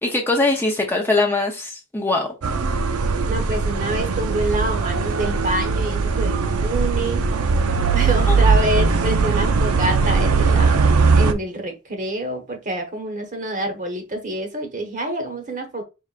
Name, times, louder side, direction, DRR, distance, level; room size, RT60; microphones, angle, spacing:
voice 1, 0.0-2.3 8.3-8.4, left 2 dB, 10° left, 0.7 m, -21 dB
sound 1, 2.4-11.3, right 4 dB, 85° right, 0.6 m, -19 dB
voice 2, 3.3-7.3 7.9-15.8, right 1 dB, 35° right, 1.0 m, -27 dB
4.7 x 3.4 x 2.5 m
head